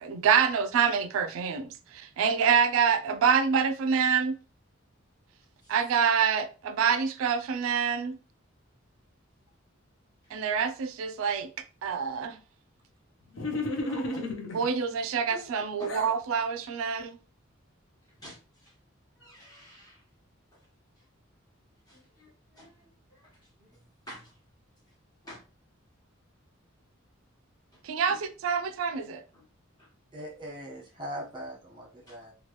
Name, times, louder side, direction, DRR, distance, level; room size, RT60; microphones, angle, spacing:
voice 1, 0.0-4.3 5.7-8.2 10.3-11.5 11.8-12.4 14.5-17.2 27.8-28.2 28.4-29.2, right 6 dB, 75° right, 0.3 m, -26 dB
sound 1, 13.3-14.7 15.3-16.2, left 2 dB, 65° left, 0.6 m, -33 dB
voice 2, 13.9-14.6 15.8-16.0 18.1-18.8 19.2-20.0 20.5-20.7 21.0-21.1 21.9-22.8 23.1-24.4 25.2-25.4 27.7-28.2 29.3-29.4 29.8-29.9 32.1-32.2, equal, 20° left, 1.0 m, -50 dB
voice 3, 30.1-32.3, equal, 25° right, 1.1 m, -40 dB
3.0 x 2.3 x 3.0 m
head